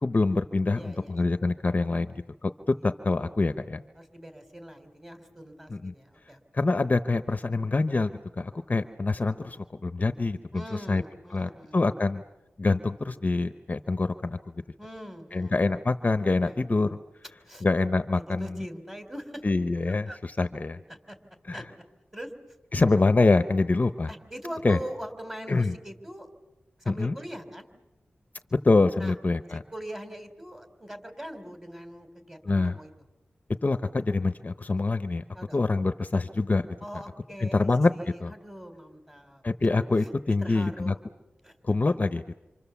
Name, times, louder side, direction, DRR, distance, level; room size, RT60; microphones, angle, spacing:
voice 1, 0.0-3.8 5.7-5.9 6.5-8.1 8.4-10.6 10.9-11.0 11.3-12.2 12.6-14.4 15.3-17.0 17.6-18.6 19.4-20.8 21.5-21.6 22.7-24.1 24.6-24.8 25.5-25.7 26.9-27.1 28.6-29.6 32.4-32.8 33.6-35.2 35.5-36.7 37.4-37.9 38.2-38.3 39.4-40.9 41.6-42.2, left 3 dB, 40° left, 10 dB, 0.8 m, -25 dB
voice 2, 0.7-1.3 4.0-6.4 10.5-11.8 14.8-15.6 16.4-16.6 17.5-17.6 18.2-19.4 20.1-20.2 20.9-21.2 21.5-21.6 22.1-22.3 24.1-26.3 26.8-27.7 29.0-29.2 29.5-32.9 35.3-35.6 36.8-39.4 40.3-41.0 41.4-41.6, equal, 10° right, 7 dB, 3.5 m, -42 dB
27.5 x 26.5 x 7.1 m, 1.0 s
wide cardioid pair, 70°, 4 cm